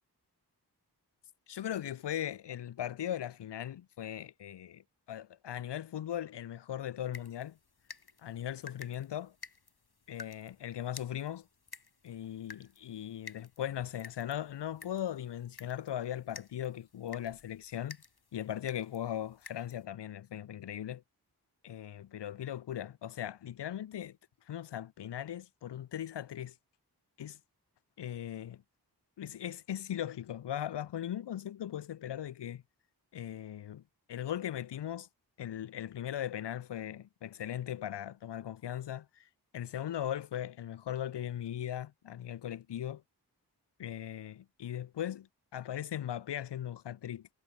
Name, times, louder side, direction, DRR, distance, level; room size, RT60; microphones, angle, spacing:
voice 1, 1.5-7.6 8.2-9.4 10.1-11.5 12.0-18.0 18.3-21.0 21.6-24.2 24.4-26.6 27.2-27.4 28.0-28.6 29.2-32.6 33.1-33.8 34.1-35.1 35.4-43.0 43.8-47.3, left 10 dB, 90° left, 0.6 m, -39 dB
sound 1, 7.1-19.9, left 4 dB, 65° left, 3.3 m, -53 dB
wide cardioid pair, 60°, 41 cm